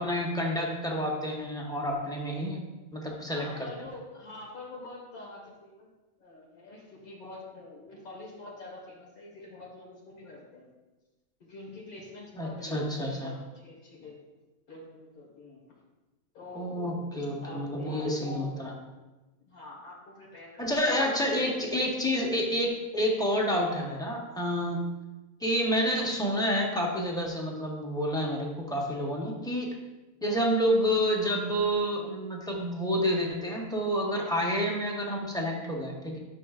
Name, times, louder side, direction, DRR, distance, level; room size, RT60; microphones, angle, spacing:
voice 1, 0.0-2.6 2.9-3.5 12.4-13.3 16.5-18.7 20.6-24.9 25.4-29.7 30.2-36.2, equal, 5° left, -1 dB, 0.9 m, -29 dB
voice 2, 3.3-5.9 6.2-10.7 11.4-14.2 14.7-15.8 16.3-18.6 18.8-19.0 19.4-21.5, left 2 dB, 85° left, -4 dB, 2.2 m, -46 dB
11.5 x 5.9 x 2.5 m, 1.1 s
omnidirectional pair, 1.5 m